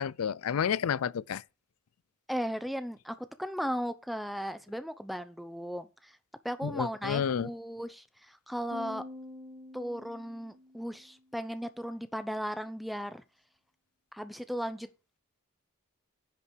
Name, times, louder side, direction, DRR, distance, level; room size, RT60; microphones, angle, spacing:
voice 1, 0.0-1.4 6.6-7.5, left 7 dB, 80° left, 0.4 m, -30 dB
voice 2, 2.3-6.2 6.4-9.0 9.7-13.2 14.1-14.9, equal, ahead, 0.8 m, -36 dB
sound 1, 8.7-11.1, left 1 dB, 80° right, 3.2 m, -46 dB
10.5 x 5.7 x 6.4 m
head